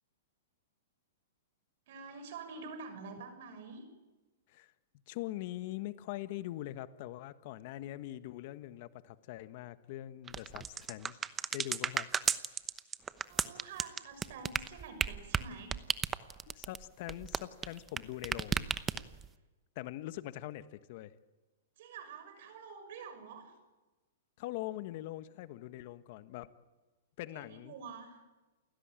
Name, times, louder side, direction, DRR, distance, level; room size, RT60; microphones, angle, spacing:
voice 1, 1.9-3.9 13.2-15.8 21.8-23.6 27.3-28.2, right 5 dB, 60° right, 8 dB, 6.6 m, -47 dB
voice 2, 5.1-11.2 11.5-12.1 16.5-18.7 19.7-21.1 24.4-26.5 27.2-27.7, left 15 dB, 50° left, 13 dB, 1.3 m, -42 dB
sound 1, 10.3-18.0 18.2-19.3, right 7 dB, 15° right, 0.9 m, -33 dB
29.0 x 17.0 x 9.0 m, 1.2 s
hypercardioid pair, 135°, 0 cm